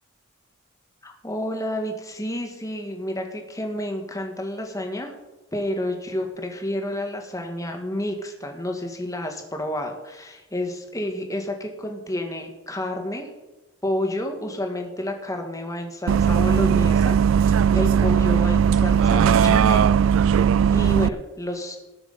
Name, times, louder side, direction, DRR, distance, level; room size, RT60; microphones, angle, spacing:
voice 1, 1.0-5.1 5.5-13.3 13.8-19.9 20.2-21.8, left 1 dB, 15° left, 4 dB, 1.8 m, -30 dB
Bus, 16.1-21.1, right 7 dB, 70° right, 0.3 m, -18 dB
19.5 x 6.7 x 5.5 m, 1.1 s
head